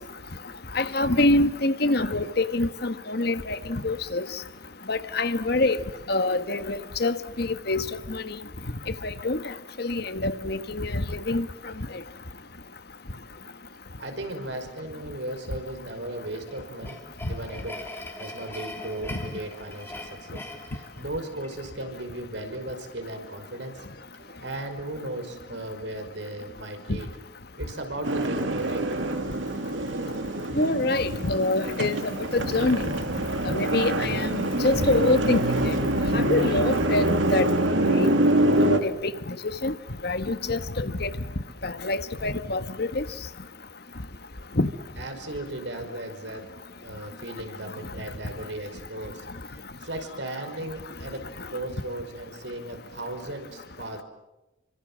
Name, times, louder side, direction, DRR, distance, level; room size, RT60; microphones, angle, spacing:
voice 1, 0.7-4.2 4.9-5.8 6.1-8.4 9.0-9.4 9.8-11.5 30.5-32.0 32.3-32.8 33.5-35.8 36.1-37.5 37.9-38.1 38.7-38.9 39.6-39.7 40.0-41.1 41.6-43.0 44.6-44.7, left 2 dB, 55° left, 1.4 m, -25 dB
voice 2, 14.0-17.0 17.3-23.9 24.2-27.1 27.6-29.0 45.0-46.5 46.8-54.0, right 1 dB, 70° right, 5.5 m, -36 dB
sound 1, 16.2-21.7, left 1 dB, 10° left, 3.1 m, -42 dB
sound 2, 28.0-38.8, right 1 dB, 85° right, 2.5 m, -25 dB
28.5 x 25.5 x 7.6 m
head